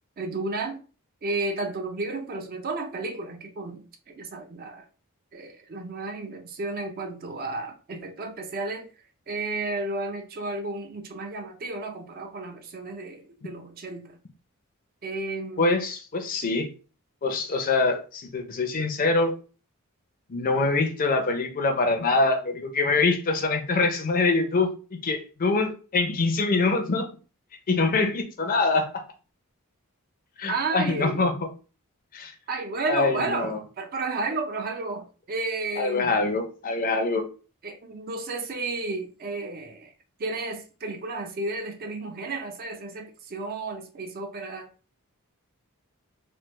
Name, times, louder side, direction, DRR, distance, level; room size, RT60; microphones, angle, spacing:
voice 1, 0.2-0.8 1.2-4.8 5.3-8.9 9.3-14.2 15.0-15.8 30.5-31.2 32.5-36.2 37.6-39.9 40.2-44.7, right 3 dB, 40° right, 0.4 m, -32 dB
voice 2, 15.6-16.7 17.2-19.4 20.3-24.7 25.0-27.1 27.7-29.0 30.4-31.4 32.1-32.3 32.9-33.6 35.8-37.3, left 3 dB, 40° left, 0.5 m, -24 dB
3.3 x 2.0 x 3.0 m
head